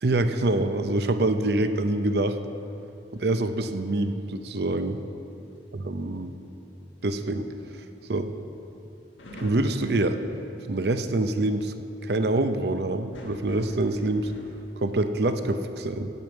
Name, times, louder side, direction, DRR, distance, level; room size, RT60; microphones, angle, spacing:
voice 1, 0.0-2.4 3.1-5.0 5.9-6.3 7.0-7.5 8.1-8.3 9.4-10.2 10.7-11.7 12.0-14.3 14.8-16.1, right 2 dB, 60° right, 9 dB, 0.6 m, -25 dB
sound 1, 2.2-4.7 5.2-5.6 7.0-7.1 9.2-10.9 13.1-15.1, left 1 dB, 85° left, 1.4 m, -47 dB
9.7 x 9.4 x 7.2 m, 2.8 s
head